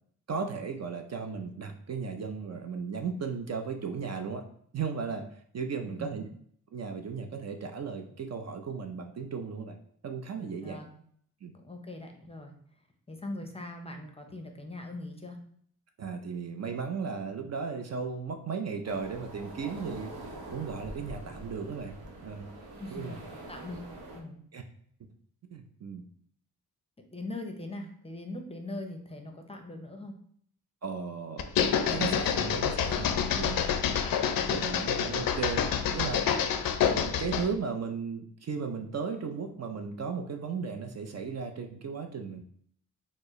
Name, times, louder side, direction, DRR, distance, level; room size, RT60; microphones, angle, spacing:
voice 1, 0.3-4.4 4.7-5.2 5.5-6.2 6.7-9.8 10.0-10.8 11.4-11.5 16.0-22.0 22.2-22.5 22.9-23.2 24.5-24.6 25.0-25.1 25.5-26.0 30.8-31.6 31.9-33.1 33.4-33.6 34.5-35.7 35.9-36.3 36.9-42.4, right 5 dB, 45° right, 5 dB, 0.5 m, -35 dB
voice 2, 5.8-6.2 10.6-10.9 11.6-12.5 13.1-15.4 22.8-23.8 24.1-24.4 27.1-30.1, left 2 dB, 15° left, 4 dB, 0.6 m, -41 dB
sound 1, 18.8-24.2, right 2 dB, 75° right, 0.9 m, -45 dB
sound 2, 31.4-37.5, left 8 dB, 70° left, 0.5 m, -28 dB
4.2 x 2.0 x 3.0 m, 0.63 s
cardioid pair, 65°, 36 cm